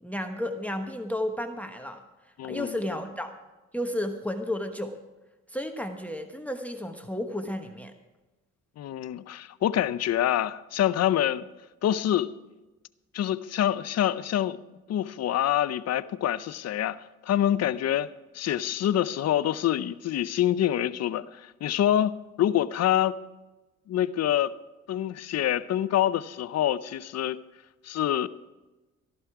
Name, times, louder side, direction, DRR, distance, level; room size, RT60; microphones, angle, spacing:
voice 1, 0.0-2.0 2.4-3.3 3.7-5.0 5.5-7.9, left 1 dB, 5° left, 1.1 m, -32 dB
voice 2, 2.4-2.8 8.8-11.4 11.8-12.3 13.1-14.6 14.9-18.1 18.3-23.2 23.9-24.5 24.9-27.4 27.8-28.3, left 11 dB, 55° left, 0.6 m, -26 dB
14.0 x 11.5 x 4.7 m
cardioid pair, 90°, 30 cm